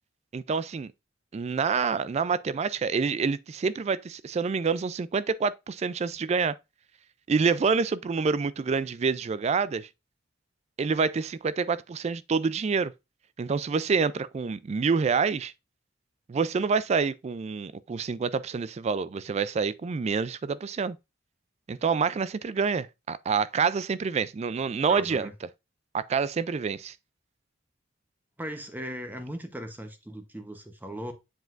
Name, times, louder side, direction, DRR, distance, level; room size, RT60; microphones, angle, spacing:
voice 1, 0.3-0.9 1.3-6.5 7.3-9.9 10.8-12.9 13.4-15.5 16.3-21.0 21.7-25.3 25.9-26.9, right 5 dB, 35° right, 0.3 m, -27 dB
voice 2, 24.9-25.3 28.4-31.1, equal, 10° right, 0.9 m, -38 dB
7.9 x 4.9 x 2.5 m
head